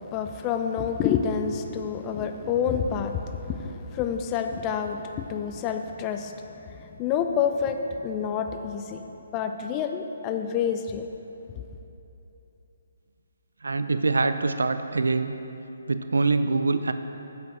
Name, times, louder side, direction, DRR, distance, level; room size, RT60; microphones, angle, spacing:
voice 1, 0.0-6.3 6.8-9.0 9.3-11.1, left 7 dB, 20° left, 6 dB, 0.4 m, -28 dB
voice 2, 13.6-15.3 15.9-16.9, right 3 dB, 85° right, 10 dB, 0.5 m, -24 dB
9.4 x 7.3 x 6.1 m, 3.0 s
hypercardioid pair, 150°, 0 cm